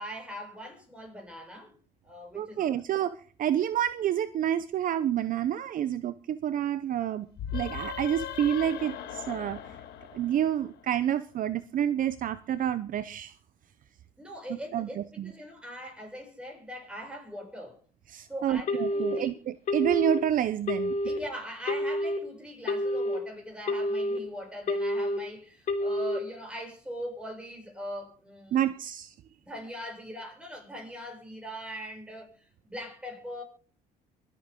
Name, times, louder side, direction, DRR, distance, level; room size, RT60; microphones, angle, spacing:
voice 1, 0.0-1.8 2.0-2.7 14.2-17.8 18.3-19.4 21.0-28.7 29.4-33.4, equal, 5° right, 6.9 m, -41 dB
voice 2, 2.3-9.6 10.1-13.3 14.5-15.3 18.1-20.9 28.5-29.1, right 10 dB, 55° right, 0.7 m, -29 dB
sound 1, 7.3-10.9, left 9 dB, 75° left, 1.8 m, -38 dB
Telephone, 18.7-19.2 19.7-20.2 20.7-21.2 21.7-22.2 22.7-23.2 23.7-24.2 24.7-25.2 25.7-26.2, left 1 dB, 50° left, 3.1 m, -28 dB
24.5 x 8.5 x 3.7 m
cardioid pair, 110°, 17 cm